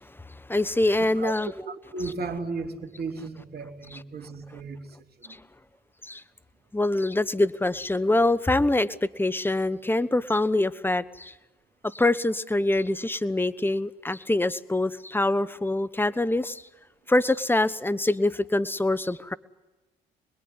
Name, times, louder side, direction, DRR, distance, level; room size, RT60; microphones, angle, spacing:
voice 1, 0.0-1.5 5.3-5.4 6.0-6.2 6.7-11.3 11.8-16.6 17.1-19.3, left 2 dB, 10° left, 15 dB, 1.2 m, -25 dB
voice 2, 1.0-1.3 1.7-5.4, right 3 dB, 55° right, 5 dB, 3.6 m, -35 dB
27.0 x 21.0 x 9.8 m, 1.1 s
supercardioid pair, 60°, 20 cm